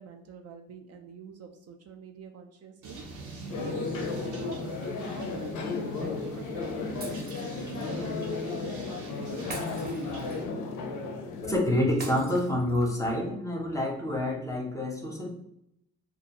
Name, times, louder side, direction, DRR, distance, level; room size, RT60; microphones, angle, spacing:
voice 1, 0.0-3.0 3.5-7.3 7.6-9.7, right 6 dB, 55° right, 4 dB, 0.4 m, -46 dB
sound 1, 2.8-10.5, right 3 dB, 75° right, 0.8 m, -44 dB
sound 2, 3.5-11.6, left 4 dB, 85° left, 0.5 m, -34 dB
Shatter, 7.0-7.9 9.5-10.6 12.0-13.0, right 2 dB, 30° right, 0.7 m, -43 dB
voice 2, 11.4-15.3, left 1 dB, 10° left, 0 dB, 0.6 m, -28 dB
2.4 x 2.2 x 2.8 m, 0.78 s
cardioid pair, 90°, 30 cm